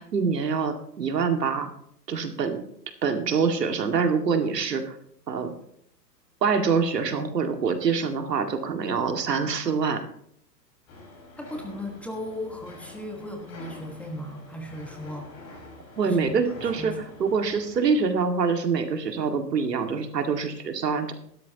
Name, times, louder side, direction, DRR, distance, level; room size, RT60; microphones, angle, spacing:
voice 1, 0.0-1.7 2.1-2.6 3.0-5.0 5.3-5.5 6.4-10.0 16.0-16.9 17.2-21.1, right 5 dB, 70° right, 6 dB, 2.1 m, -25 dB
sound 1, 10.9-18.0, left 2 dB, 30° left, 4.9 m, -46 dB
voice 2, 11.4-15.3 16.0-16.3 16.8-17.0, left 1 dB, 5° left, 2 dB, 1.2 m, -36 dB
15.5 x 12.5 x 2.9 m, 0.68 s
hypercardioid pair, 125°, 50 cm